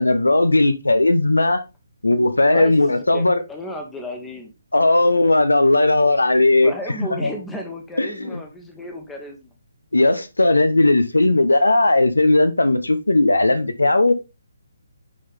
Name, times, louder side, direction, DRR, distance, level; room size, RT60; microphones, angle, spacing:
voice 1, 0.0-1.6 2.0-3.4 4.7-6.7 7.2-7.3 8.0-8.4 9.9-14.1, left 2 dB, 75° left, 1.0 m, -17 dB
voice 2, 2.5-4.5 6.6-9.5, equal, 5° left, 1.2 m, -34 dB
9.8 x 4.1 x 3.5 m
figure-of-eight pair, 140°, 0 cm